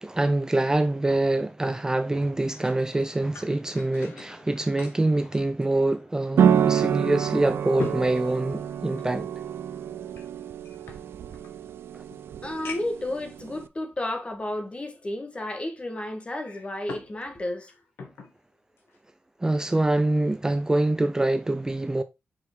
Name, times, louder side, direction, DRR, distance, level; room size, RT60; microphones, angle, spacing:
voice 1, 0.0-9.3 11.9-12.1 19.4-22.0, right 2 dB, 15° right, 0.4 m, -25 dB
sound 1, 2.2-6.2 6.6-6.7 7.2-9.2 10.1-11.5 12.1-12.2 12.6-13.1 13.8-13.9 16.2-17.2 17.5-18.3 18.8-19.0, left 3 dB, 90° left, 1.7 m, -41 dB
sound 2, 6.4-13.7, right 8 dB, 85° right, 0.4 m, -27 dB
voice 2, 12.4-17.7, left 1 dB, 30° left, 1.5 m, -32 dB
6.0 x 4.7 x 3.6 m
cardioid pair, 85°, 4 cm